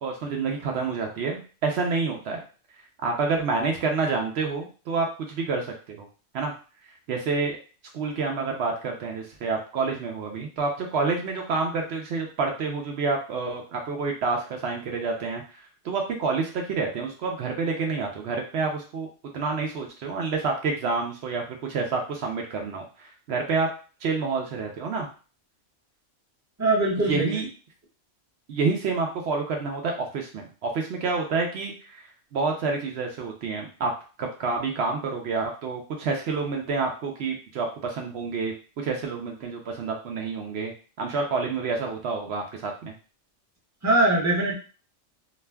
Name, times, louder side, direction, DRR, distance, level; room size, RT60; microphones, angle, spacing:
voice 1, 0.0-2.4 3.0-6.1 6.3-6.5 6.8-7.6 7.9-19.1 19.3-23.7 24.0-25.1 27.0-27.5 28.5-33.9 34.2-40.7 41.0-42.9, right 4 dB, 65° right, 2 dB, 0.8 m, -28 dB
voice 2, 26.6-27.4 43.8-44.5, right 2 dB, 15° right, -4 dB, 0.7 m, -22 dB
2.4 x 2.2 x 3.3 m, 0.37 s
omnidirectional pair, 1.2 m